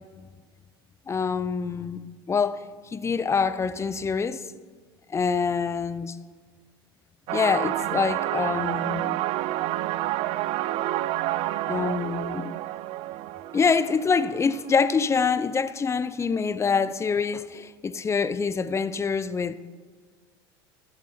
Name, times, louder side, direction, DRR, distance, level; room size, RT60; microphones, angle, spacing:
voice 1, 1.1-4.4 5.1-6.2 7.3-9.0 11.7-12.5 13.5-19.6, left 5 dB, 20° left, 0.7 m, -25 dB
sound 1, 7.3-14.8, right 14 dB, 50° right, 0.5 m, -29 dB
14.0 x 12.5 x 4.4 m
hypercardioid pair, 75°, 13 cm